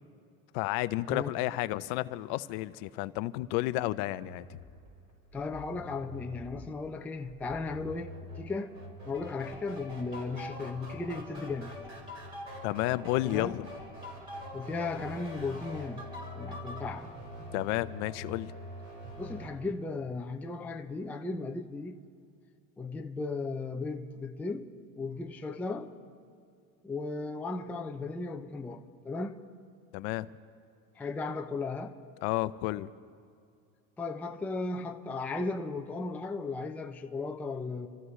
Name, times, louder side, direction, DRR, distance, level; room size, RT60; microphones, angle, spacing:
voice 1, 0.5-4.6 12.6-13.7 17.5-18.5 29.9-30.3 32.2-32.9, left 17 dB, 60° left, 0.6 m, -31 dB
sound 1, 4.1-19.5, equal, 40° right, 4.7 m, -46 dB
voice 2, 5.3-8.7 9.1-11.8 13.2-13.6 14.5-17.1 19.2-22.0 22.8-24.7 25.0-25.9 26.8-29.4 31.0-31.9 34.0-37.9, left 3 dB, 5° left, 0.4 m, -36 dB
sound 2, 9.1-16.9, left 2 dB, 10° right, 3.5 m, -46 dB
27.0 x 15.0 x 3.2 m
supercardioid pair, 135°, 42 cm